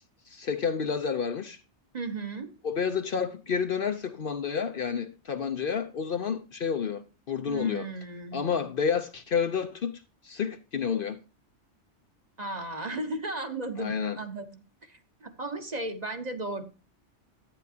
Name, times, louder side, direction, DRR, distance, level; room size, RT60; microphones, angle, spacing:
voice 1, 0.3-1.6 2.6-7.9 8.3-9.9 10.2-11.2 13.8-14.2, left 6 dB, 55° left, 0.8 m, -30 dB
voice 2, 1.9-2.5 7.5-8.4 12.4-16.6, right 2 dB, 35° right, 1.1 m, -35 dB
11.5 x 9.4 x 2.8 m
omnidirectional pair, 1.2 m